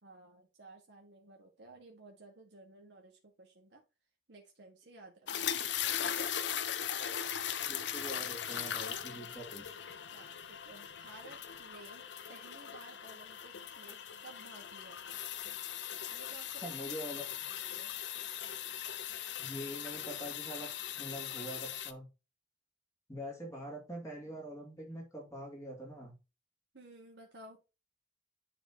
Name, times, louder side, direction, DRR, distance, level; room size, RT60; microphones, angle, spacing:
voice 1, 0.0-3.8 4.3-5.5 6.0-6.3 8.5-8.6 10.1-12.0 12.3-15.2 16.1-16.6 17.5-17.9 26.7-27.6, right 2 dB, 80° right, 1 dB, 1.7 m, -55 dB
sound 1, 5.3-21.9, left 9 dB, 85° left, 0.7 m, -39 dB
voice 2, 7.7-9.8 16.6-17.2 19.4-22.1 23.1-26.1, equal, 20° left, -2 dB, 2.7 m, -44 dB
10.0 x 4.3 x 2.9 m, 0.28 s
head